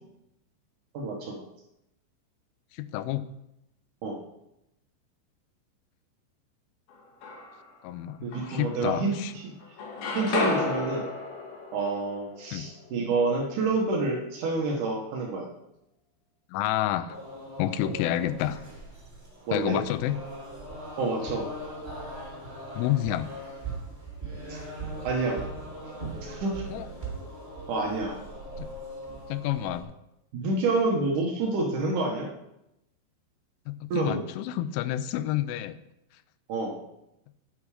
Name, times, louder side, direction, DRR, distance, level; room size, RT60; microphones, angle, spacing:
voice 1, 0.9-1.4 4.0-4.2 8.2-9.1 9.4-9.5 10.1-11.1 11.7-15.5 19.5-19.8 21.0-21.5 24.5-24.7 25.0-25.4 26.2-26.6 27.7-28.2 30.3-32.3 33.9-34.2 36.5-36.8, right 3 dB, 85° right, 0 dB, 1.8 m, -28 dB
voice 2, 2.7-3.3 7.8-9.3 12.5-12.7 16.5-17.2 17.6-18.6 19.5-20.3 22.8-23.3 26.7-26.9 28.6-28.7 29.3-29.9 33.7-35.8, left 12 dB, 85° left, 13 dB, 3.1 m, -29 dB
sound 1, 6.9-7.8 8.3-9.3 9.6-13.6, left 3 dB, 60° left, 3.3 m, -33 dB
sound 2, 17.1-29.8, right 1 dB, 20° right, 2.2 m, -40 dB
9.5 x 8.8 x 4.9 m, 0.86 s
omnidirectional pair, 5.6 m